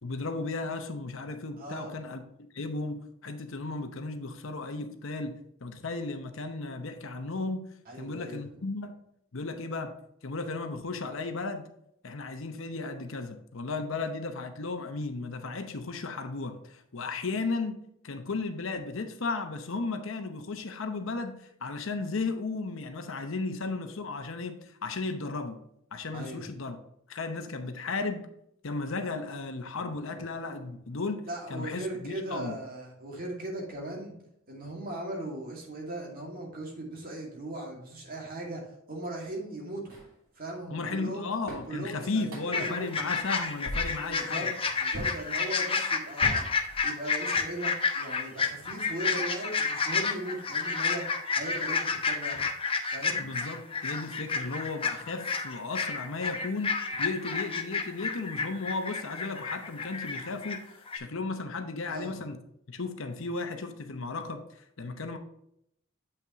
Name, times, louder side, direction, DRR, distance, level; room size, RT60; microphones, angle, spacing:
voice 1, 0.0-2.2 2.5-7.6 8.0-8.9 9.3-9.9 10.2-11.7 12.0-17.8 18.0-25.6 25.9-26.8 27.1-28.3 28.6-31.2 31.5-32.6 40.7-44.5 53.2-62.4 62.7-65.2, left 3 dB, 70° left, 7 dB, 0.8 m, -35 dB
voice 2, 1.6-1.9 7.9-8.4 26.1-26.4 31.3-34.1 34.5-39.9 40.4-41.3 41.6-42.9 44.1-44.5 44.8-46.5 46.8-52.5 52.9-53.3 61.8-62.1, right 1 dB, 45° right, -1 dB, 2.2 m, -38 dB
sound 1, 39.9-40.1 41.0-41.1 41.5-41.7 42.3-42.7 43.1-43.3 43.6-44.1 44.9-45.2 46.2-47.1, equal, 85° right, 2.8 m, -38 dB
sound 2, 42.5-60.6 60.9-61.0, left 5 dB, 25° left, 0.7 m, -30 dB
8.1 x 5.9 x 3.0 m, 0.75 s
head